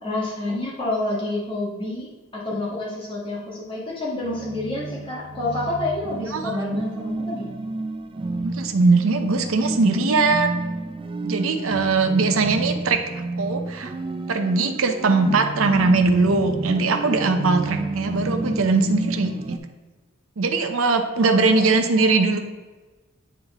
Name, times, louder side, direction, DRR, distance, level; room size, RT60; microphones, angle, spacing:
voice 1, 0.0-7.5 9.4-9.6 21.2-22.2, left 2 dB, 25° left, -6 dB, 1.3 m, -29 dB
sound 1, 4.2-19.6, right 2 dB, 25° right, 0.3 m, -30 dB
voice 2, 8.4-10.6 11.2-13.9 14.3-19.6 20.4-22.4, right 3 dB, 80° right, 6 dB, 0.7 m, -20 dB
9.5 x 3.8 x 3.5 m, 1.2 s
head